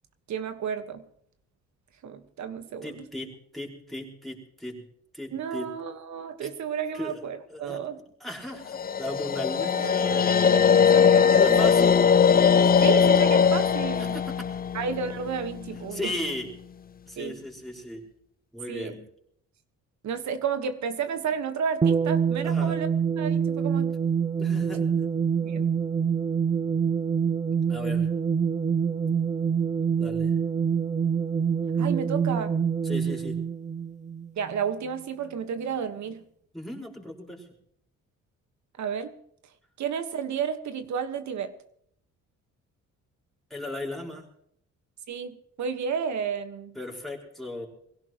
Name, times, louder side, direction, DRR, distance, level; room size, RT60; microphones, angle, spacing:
voice 1, 0.3-1.0 2.0-3.1 5.3-8.0 9.8-11.6 12.8-14.2 14.7-16.1 17.2-17.4 18.7-19.0 20.0-22.9 23.2-23.9 25.4-25.7 31.8-32.5 34.4-36.2 38.8-39.1 39.8-41.5 45.1-46.7, right 7 dB, 65° right, 9 dB, 1.6 m, -32 dB
voice 2, 2.8-4.9 5.1-5.7 6.4-6.5 6.9-7.2 7.5-7.8 8.2-10.2 11.3-12.1 13.9-14.5 15.9-16.5 17.1-18.0 18.5-19.0 22.4-22.8 24.4-25.1 27.7-28.1 30.0-30.3 32.8-33.4 36.5-37.5 43.5-44.3 46.8-47.7, left 1 dB, ahead, -1 dB, 5.2 m, -36 dB
sound 1, 8.7-15.8, left 7 dB, 30° left, 0.6 m, -20 dB
sound 2, 21.8-34.6, right 6 dB, 25° right, 0.8 m, -26 dB
23.5 x 16.5 x 3.1 m, 0.70 s
cardioid pair, 90°, 30 cm